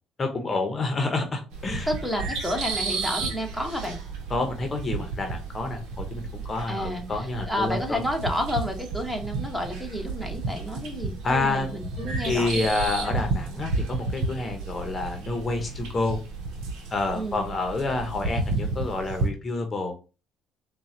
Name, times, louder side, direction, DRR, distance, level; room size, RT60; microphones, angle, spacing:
voice 1, 0.2-1.9 4.3-8.0 11.2-11.7 12.2-16.2 16.9-19.9, left 3 dB, 40° left, 5 dB, 0.8 m, -28 dB
sound 1, 1.5-19.3, right 3 dB, 80° right, 0.9 m, -32 dB
voice 2, 1.9-4.0 6.7-12.6 17.1-17.4, equal, ahead, 2 dB, 1.2 m, -30 dB
4.0 x 2.3 x 3.8 m, 0.33 s
supercardioid pair, 65°, 0 cm